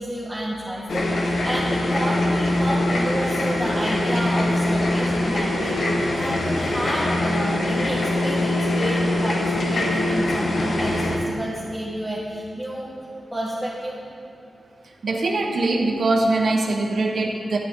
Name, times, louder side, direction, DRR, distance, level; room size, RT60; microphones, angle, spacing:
voice 1, 0.0-12.9 13.3-14.0, equal, 10° right, -7 dB, 1.5 m, -30 dB
sound 1, 0.9-11.2, left 1 dB, 75° left, 1.3 m, -23 dB
voice 2, 15.0-17.6, right 2 dB, 65° right, 1 dB, 1.2 m, -22 dB
11.0 x 10.0 x 3.8 m, 2.7 s
wide cardioid pair, 85°, 0 cm